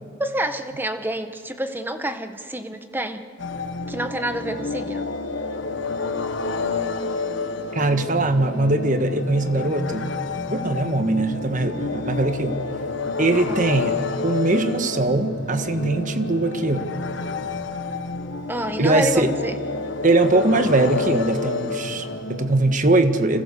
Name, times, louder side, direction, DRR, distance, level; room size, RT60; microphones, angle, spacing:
voice 1, 0.2-3.2 3.9-5.1 13.3-13.6 18.5-19.6, right 1 dB, 10° right, 8 dB, 1.2 m, -28 dB
sound 1, 3.4-22.7, left 3 dB, 60° left, 1.2 m, -29 dB
voice 2, 7.7-10.1 10.5-12.6 13.2-14.0 14.2-16.9 18.8-19.3 20.0-23.4, right 2 dB, 40° right, 8 dB, 1.5 m, -21 dB
30.0 x 27.0 x 6.9 m, 2.3 s
head